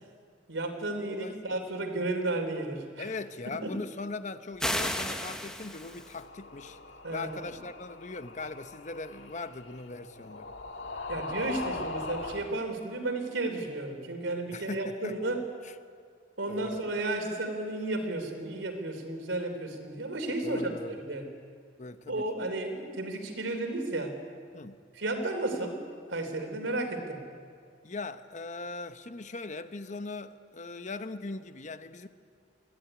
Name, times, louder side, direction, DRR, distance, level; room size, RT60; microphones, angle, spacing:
voice 1, 0.5-3.0 3.6-3.7 7.0-7.3 11.1-15.4 16.4-20.6 21.0-21.3 22.1-24.1 25.0-25.8 26.1-27.2, right 2 dB, 85° right, 5 dB, 3.3 m, -33 dB
voice 2, 1.1-1.4 3.0-6.8 7.1-10.5 14.5-15.4 15.6-15.8 16.5-16.9 20.4-21.0 21.8-22.2 24.5-24.8 27.8-32.1, left 3 dB, 40° left, 10 dB, 0.9 m, -40 dB
sound 1, 4.6-6.2, left 1 dB, 5° left, 1.3 m, -33 dB
sound 2, 5.8-12.5, left 3 dB, 75° left, 1.7 m, -41 dB
22.0 x 15.0 x 9.9 m, 2.1 s
head